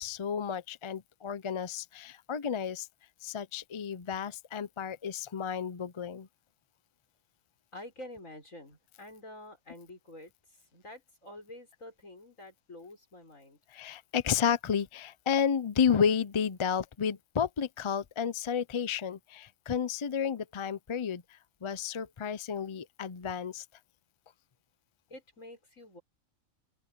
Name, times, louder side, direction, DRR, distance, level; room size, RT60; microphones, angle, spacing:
voice 1, 0.0-2.9 3.2-6.3 13.7-21.2 21.6-23.6, left 7 dB, 40° left, 0.4 m, -31 dB
voice 2, 7.7-10.3 10.7-13.6 25.1-26.0, left 1 dB, 75° left, 7.0 m, -48 dB
open air
omnidirectional pair, 1.4 m